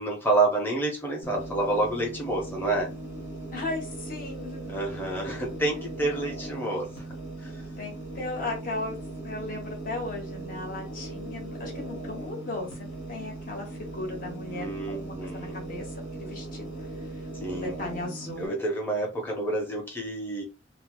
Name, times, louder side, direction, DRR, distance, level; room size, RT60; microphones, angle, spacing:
voice 1, 0.0-2.9 4.7-6.9 7.4-7.5 14.5-15.6 17.4-17.7 18.4-20.4, right 2 dB, 10° left, -2 dB, 0.8 m, -28 dB
sound 1, 1.2-18.5, right 2 dB, 65° left, 1.1 m, -39 dB
voice 2, 3.5-4.8 7.8-9.0 9.2-16.7 17.0-18.6, left 2 dB, 45° left, 0 dB, 1.0 m, -36 dB
2.7 x 2.1 x 2.9 m, 0.31 s
head